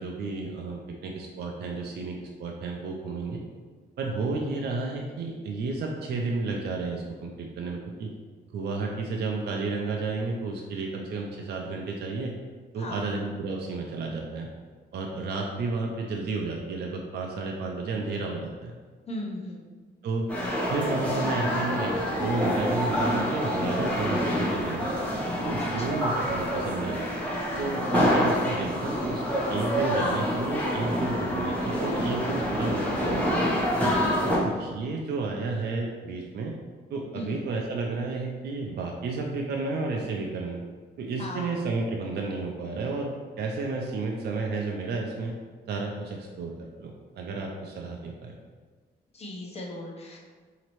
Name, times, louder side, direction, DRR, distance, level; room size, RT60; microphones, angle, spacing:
voice 1, 0.0-3.4 4.0-8.1 8.5-12.3 12.7-14.5 14.9-18.7 20.0-20.3 20.7-24.9 25.4-27.1 27.6-33.8 34.4-36.5 36.9-40.6 41.0-43.1 43.4-45.3 45.7-46.5 46.8-48.3, right 3 dB, 65° right, 0 dB, 0.5 m, -32 dB
voice 2, 19.1-19.6 25.6-26.0 34.2-34.5 37.1-37.4 41.2-41.6 49.1-50.2, left 1 dB, 35° left, -2 dB, 0.8 m, -37 dB
sound 1, 20.3-34.4, equal, 10° left, 1.0 m, -27 dB
4.1 x 2.8 x 3.0 m, 1.5 s
cardioid pair, 115°, 18 cm